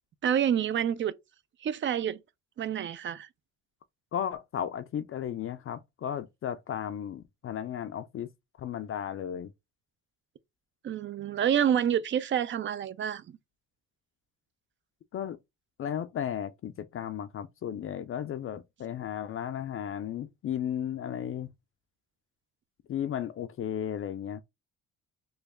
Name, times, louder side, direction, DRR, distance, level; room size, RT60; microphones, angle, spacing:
voice 1, 0.2-1.1 1.6-2.2 2.6-3.3 10.8-13.4, right 9 dB, 40° right, 0.4 m, -28 dB
voice 2, 4.1-8.3 8.6-9.5 15.1-15.4 15.8-21.5 22.9-24.4, left 9 dB, 45° left, 0.4 m, -34 dB
3.1 x 2.2 x 3.4 m
cardioid pair, 90°, 30 cm